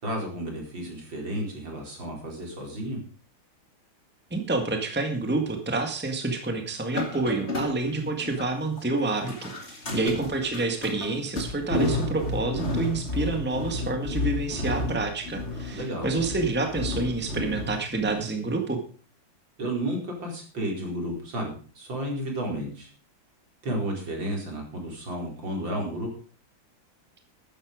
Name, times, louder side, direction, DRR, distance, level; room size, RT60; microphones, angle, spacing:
voice 1, 0.0-3.0 9.8-10.3 15.7-16.1 19.6-22.9 23.6-26.1, right 1 dB, 65° right, 0 dB, 5.1 m, -32 dB
voice 2, 4.3-18.8, right 3 dB, 5° right, 5 dB, 1.7 m, -28 dB
sound 1, 6.9-8.5 8.7-17.8 18.1-18.3, left 2 dB, 30° left, 2.6 m, -31 dB
13.5 x 10.0 x 5.1 m, 0.40 s
omnidirectional pair, 2.3 m